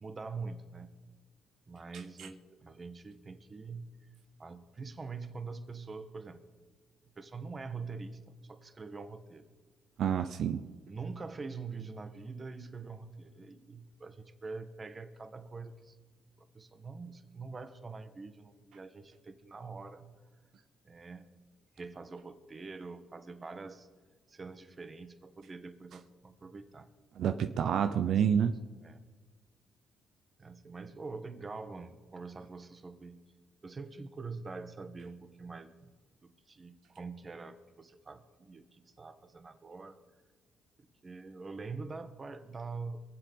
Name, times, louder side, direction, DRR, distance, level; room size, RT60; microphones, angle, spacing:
voice 1, 0.0-0.9 1.7-4.0 4.4-6.4 7.2-9.5 10.8-16.0 16.4-20.1 20.8-21.3 21.8-23.9 24.3-26.9 27.2-27.4 28.0-28.5 28.8-29.0 30.4-33.2 33.6-35.9 36.2-40.0 40.8-43.0, right 4 dB, 35° right, 10 dB, 1.4 m, -44 dB
voice 2, 10.0-10.6 27.2-28.5, right 8 dB, 70° right, 9 dB, 0.7 m, -28 dB
22.5 x 7.8 x 5.4 m, 1.4 s
cardioid pair, 80°, 0 cm